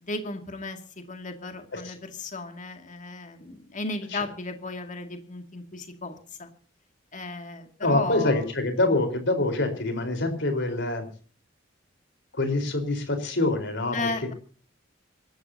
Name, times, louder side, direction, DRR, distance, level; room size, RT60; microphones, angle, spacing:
voice 1, 0.0-6.5 7.1-8.4 13.9-14.3, left 2 dB, 40° left, 5 dB, 2.3 m, -35 dB
voice 2, 7.8-11.1 12.3-14.0, left 2 dB, 65° left, 6 dB, 4.2 m, -25 dB
26.0 x 13.0 x 2.8 m, 0.40 s
head